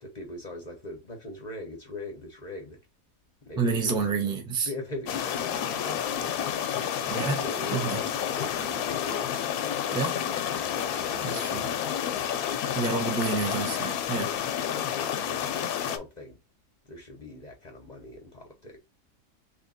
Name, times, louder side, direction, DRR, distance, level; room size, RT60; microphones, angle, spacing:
voice 1, 0.0-2.8 3.4-6.7 7.4-9.3 10.5-12.4 14.8-15.6 15.8-16.4 16.8-18.8, left 1 dB, 40° left, 0.7 m, -41 dB
voice 2, 3.6-4.7 7.1-7.4 7.7-8.0 9.9-10.2 11.2-11.7 12.7-14.3, right 4 dB, 5° right, 0.4 m, -29 dB
sound 1, 5.1-16.0, left 9 dB, 70° left, 1.0 m, -30 dB
3.3 x 2.8 x 3.9 m
omnidirectional pair, 1.7 m